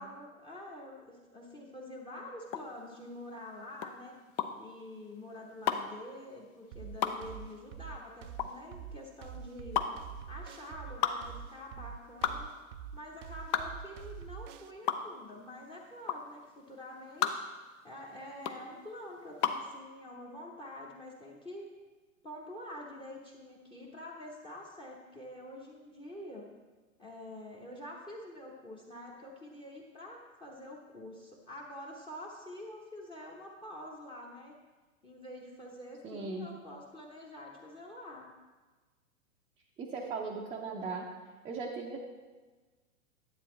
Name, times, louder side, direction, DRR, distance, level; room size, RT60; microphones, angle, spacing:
voice 1, 0.0-4.2 4.6-9.8 10.3-12.5 12.9-17.4 17.8-21.7 22.2-26.5 27.0-34.5 35.0-38.3, left 1 dB, 10° left, -1 dB, 0.9 m, -47 dB
sound 1, 2.5-19.7, left 8 dB, 30° left, 0.5 m, -35 dB
sound 2, 6.7-14.7, right 8 dB, 60° right, 0.5 m, -45 dB
voice 2, 36.0-36.5 39.8-41.1 41.4-42.0, right 4 dB, 15° right, -3 dB, 0.6 m, -38 dB
10.0 x 8.2 x 3.2 m, 1.3 s
hypercardioid pair, 125°, 42 cm